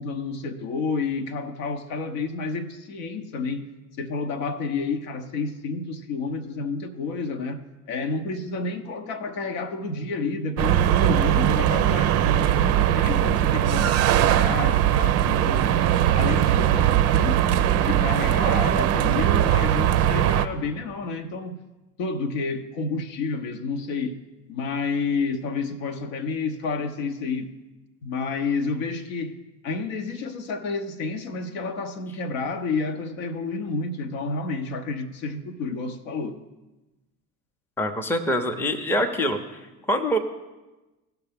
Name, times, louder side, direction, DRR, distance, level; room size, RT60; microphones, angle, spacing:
voice 1, 0.0-3.7 4.0-7.6 7.9-15.8 16.1-21.6 22.0-24.2 24.5-27.5 28.0-29.4 29.6-36.4, left 4 dB, 60° left, 8 dB, 0.9 m, -30 dB
sound 1, 10.6-20.5, right 11 dB, 35° right, 0.5 m, -20 dB
voice 2, 37.8-39.4 39.9-40.2, equal, 5° left, 5 dB, 0.7 m, -24 dB
16.5 x 5.9 x 3.5 m, 1.1 s
figure-of-eight pair, 65°, 46 cm